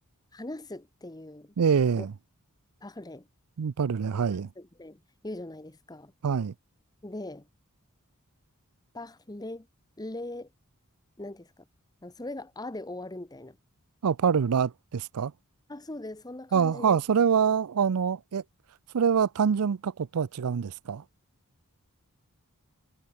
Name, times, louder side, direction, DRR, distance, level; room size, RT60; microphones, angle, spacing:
voice 1, 0.3-1.5 1.9-2.1 2.8-3.3 4.6-6.1 7.0-7.5 8.9-9.7 10.0-10.5 11.2-11.6 12.0-13.6 15.7-17.0, left 1 dB, 15° left, 1.0 m, -40 dB
voice 2, 1.6-2.1 3.6-4.5 6.2-6.5 14.0-15.3 16.5-18.4 18.9-21.0, right 6 dB, 80° right, 0.5 m, -25 dB
head